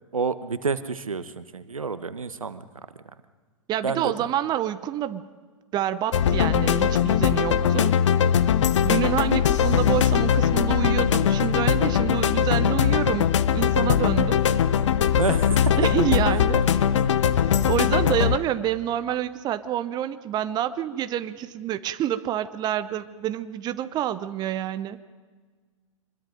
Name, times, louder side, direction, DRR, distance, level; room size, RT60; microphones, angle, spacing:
voice 1, 0.1-2.6 3.8-4.1 15.2-15.6, right 5 dB, 85° right, 13 dB, 1.2 m, -28 dB
voice 2, 3.7-5.3 5.7-8.0 8.8-14.4 15.8-16.6 17.7-25.0, right 11 dB, 25° right, 12 dB, 0.8 m, -27 dB
sound 1, 6.1-18.4, left 8 dB, 60° left, 1.0 m, -21 dB
25.5 x 22.0 x 5.2 m, 1.5 s
figure-of-eight pair, 110°, 17 cm